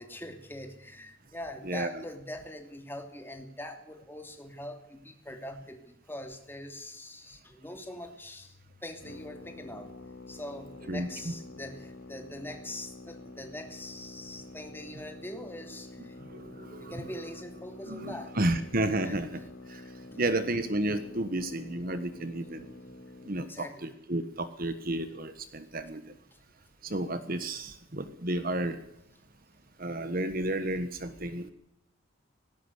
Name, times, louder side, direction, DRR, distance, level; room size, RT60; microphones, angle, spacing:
voice 1, 0.0-9.9 10.3-16.2 16.8-18.3 19.0-20.4 23.5-23.9 26.3-26.4, left 1 dB, 10° left, 5 dB, 2.9 m, -43 dB
sound 1, 9.0-23.5, left 2 dB, 80° left, 2.9 m, -48 dB
voice 2, 16.3-17.0 17.9-19.4 19.7-19.8 20.2-22.7 23.3-26.0 26.8-28.8 29.8-31.5, right 1 dB, 45° right, 11 dB, 1.4 m, -32 dB
18.5 x 17.5 x 8.2 m, 0.79 s
head